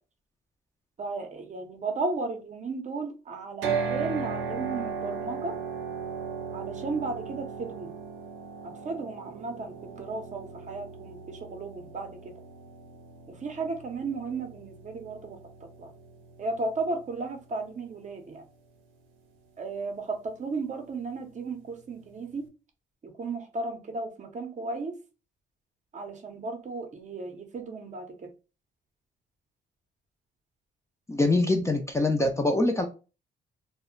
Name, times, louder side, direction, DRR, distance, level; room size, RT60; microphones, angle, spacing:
voice 1, 1.0-5.5 6.5-7.9 8.6-12.3 13.3-15.4 15.8-15.9 16.4-18.4 19.6-22.5 23.0-24.9 25.9-28.3, right 3 dB, 40° right, 5 dB, 0.6 m, -34 dB
sound 1, 3.6-17.7, right 5 dB, 90° right, 0.6 m, -37 dB
voice 2, 31.1-32.9, left 2 dB, 15° left, 4 dB, 0.4 m, -24 dB
2.1 x 2.0 x 3.7 m, 0.32 s
cardioid pair, 90°, 20 cm